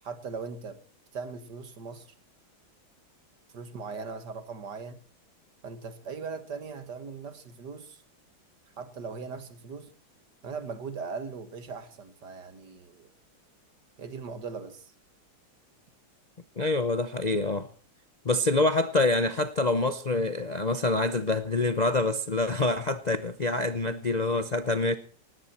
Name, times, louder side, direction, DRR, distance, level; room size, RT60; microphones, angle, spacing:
voice 1, 0.0-0.8 1.1-2.1 3.5-5.0 5.6-8.0 8.8-9.9 10.4-13.1 14.0-14.9, right 5 dB, 55° right, 2.2 m, -39 dB
voice 2, 16.6-17.7 18.2-24.9, left 2 dB, 80° left, 0.3 m, -26 dB
19.0 x 16.5 x 4.4 m
omnidirectional pair, 2.3 m